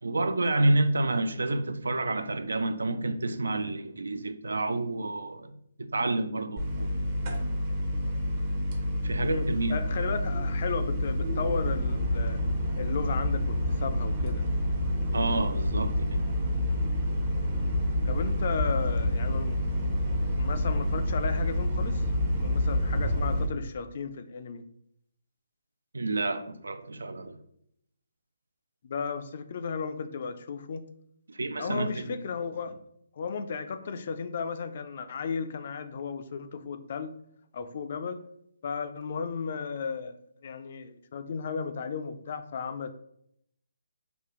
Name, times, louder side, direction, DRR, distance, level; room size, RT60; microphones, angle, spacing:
voice 1, 0.0-6.9 7.3-7.5 9.0-9.8 15.1-16.2 25.9-27.4 31.3-32.2, right 2 dB, 80° right, 0.3 m, -29 dB
sound 1, 6.6-23.5, left 1 dB, 35° right, 0.7 m, -28 dB
voice 2, 9.2-12.4 12.8-14.4 18.1-19.6 20.4-22.0 22.4-24.6 28.8-30.8 31.6-32.7 33.2-37.1 37.5-38.2 38.6-40.2 40.4-42.9, left 5 dB, 50° left, 0.3 m, -34 dB
3.9 x 2.3 x 3.0 m
figure-of-eight pair, 145°, 0 cm